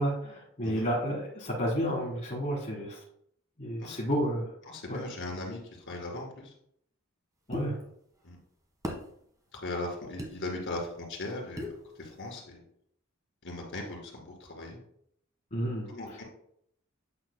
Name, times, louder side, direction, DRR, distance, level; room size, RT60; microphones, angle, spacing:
voice 1, 0.0-3.0 3.6-4.5 4.9-5.0 7.5-7.8 15.5-15.9, equal, 35° left, -5 dB, 1.7 m, -31 dB
voice 2, 4.6-5.6 5.9-6.5 8.2-8.4 9.5-12.6 13.4-14.8 15.9-16.2, left 2 dB, 60° left, -1 dB, 2.3 m, -38 dB
Bottle Pops, 7.5-7.7 8.8-9.1 10.2-10.3 11.6-11.8, left 1 dB, 15° right, 1.1 m, -35 dB
8.9 x 6.1 x 2.2 m, 0.70 s
head